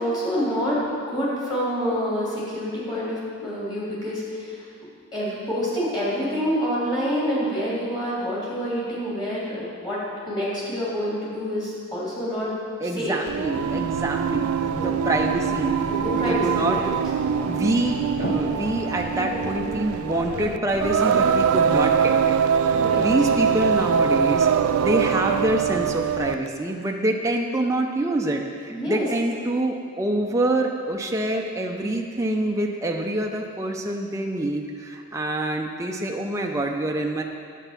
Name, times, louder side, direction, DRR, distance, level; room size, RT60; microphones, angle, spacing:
voice 1, 0.0-4.6 5.1-12.5 12.9-13.2 16.0-16.9 22.7-23.0 28.7-29.1, equal, 20° left, -8 dB, 3.0 m, -27 dB
voice 2, 12.8-15.8 16.2-16.8 17.5-22.3 22.6-24.5 24.8-37.2, right 1 dB, 15° right, 1 dB, 0.5 m, -26 dB
Singing, 13.3-26.5, right 7 dB, 85° right, 0.3 m, -23 dB
sound 1, 14.2-20.8, equal, 35° left, 0.9 m, -35 dB
8.9 x 8.1 x 5.8 m, 2.2 s
head